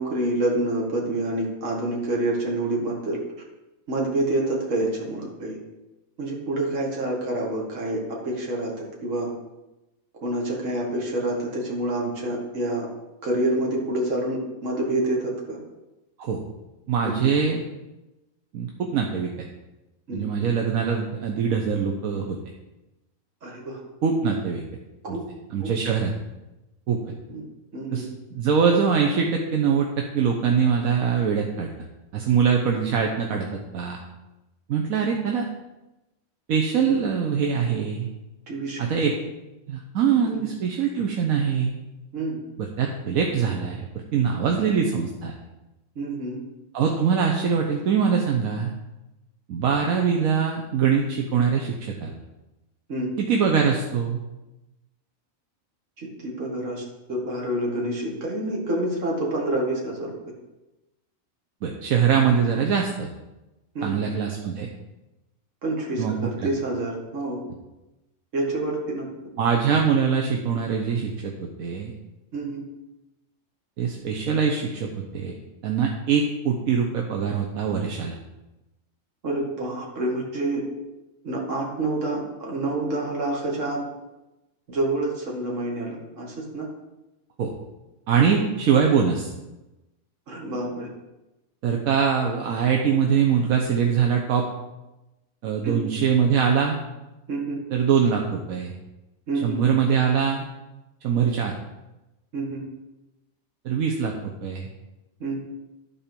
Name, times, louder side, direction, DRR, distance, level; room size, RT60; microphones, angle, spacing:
voice 1, 0.0-3.2 3.9-5.6 6.2-9.3 10.2-12.9 13.2-15.6 17.0-17.3 20.1-20.5 23.4-23.8 25.0-25.2 25.6-25.9 27.3-27.4 27.7-28.1 38.5-39.2 40.2-40.4 42.1-42.4 46.0-46.4 52.9-53.1 56.0-56.8 57.1-60.1 63.8-64.0 65.6-67.4 68.3-69.1 72.3-72.6 79.2-80.6 81.2-83.8 84.7-86.7 88.4-88.5 90.3-90.9 95.6-95.9 97.3-97.6 99.3-99.6 102.3-102.6 105.2-105.4, right 1 dB, 60° right, -2 dB, 2.1 m, -27 dB
voice 2, 16.9-17.6 18.5-19.3 20.1-22.4 24.0-24.6 25.1-25.2 25.5-26.1 26.9-27.0 27.9-28.0 28.3-31.7 32.1-33.5 33.7-34.0 34.7-35.5 36.5-38.1 38.8-39.1 39.7-41.7 42.6-45.3 46.7-48.7 49.5-52.2 53.2-54.2 61.6-63.1 63.8-64.7 66.0-66.1 66.4-66.5 69.4-71.9 73.8-75.4 75.6-78.2 87.4-87.5 88.1-89.3 91.6-94.5 95.4-96.8 97.7-98.7 99.4-100.5 101.0-101.5 103.6-104.1 104.4-104.7, right 6 dB, 80° right, 1 dB, 1.3 m, -23 dB
12.5 x 4.3 x 5.2 m, 1.0 s
omnidirectional pair, 1.5 m